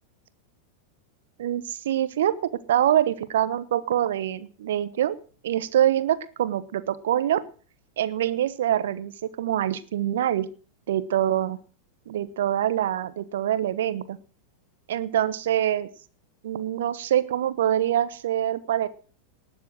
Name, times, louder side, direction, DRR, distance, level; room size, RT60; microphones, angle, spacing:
voice 1, 1.4-2.3 2.7-5.2 5.4-7.4 8.0-10.5 10.9-11.6 12.1-14.2 14.9-15.9 16.4-18.9, right 11 dB, 60° right, 15 dB, 1.0 m, -25 dB
19.0 x 7.5 x 6.2 m, 0.41 s
figure-of-eight pair, 90°, 0 cm